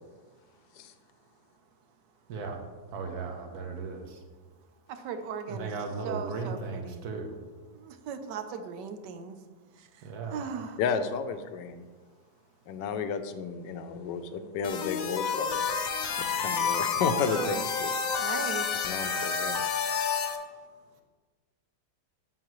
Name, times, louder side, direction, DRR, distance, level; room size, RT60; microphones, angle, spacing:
voice 1, 2.9-4.0 5.5-7.3 10.1-10.4, right 4 dB, 65° right, 4 dB, 1.3 m, -36 dB
voice 2, 4.9-5.7 6.0-7.0 7.7-9.4 9.8-10.8 17.3-17.7 18.2-18.9, right 6 dB, 85° right, 9 dB, 1.3 m, -38 dB
voice 3, 10.8-11.8 12.7-15.7 16.2-17.9 18.8-19.6, left 5 dB, 85° left, 9 dB, 1.2 m, -32 dB
sound 1, 14.6-20.4, left 6 dB, 65° left, 1.0 m, -29 dB
7.4 x 7.3 x 3.0 m, 1.4 s
omnidirectional pair, 1.8 m